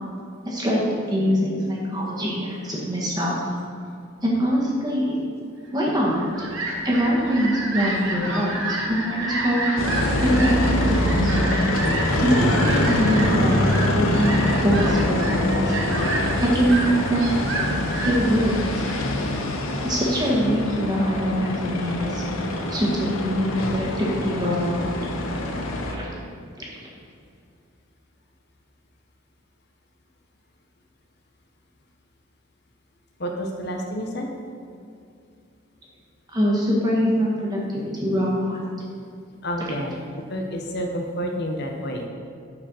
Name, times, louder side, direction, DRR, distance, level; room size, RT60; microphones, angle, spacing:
voice 1, 0.4-0.8 1.1-3.4 4.2-5.1 5.7-6.5 6.8-9.6 10.2-11.3 12.2-15.5 16.4-17.3 18.0-19.0 19.8-22.2 22.7-24.9 25.9-26.1 36.3-38.6, equal, 20° right, -4 dB, 1.6 m, -23 dB
Fowl, 6.0-19.9, right 2 dB, 70° right, 1.3 m, -30 dB
sound 1, 9.8-25.9, left 1 dB, 85° left, 1.0 m, -25 dB
sound 2, 11.9-19.8, left 1 dB, 30° left, 2.4 m, -36 dB
voice 2, 33.2-34.3 39.4-40.0 40.3-42.1, equal, 50° left, 2 dB, 0.9 m, -29 dB
9.7 x 4.8 x 6.3 m, 2.4 s
head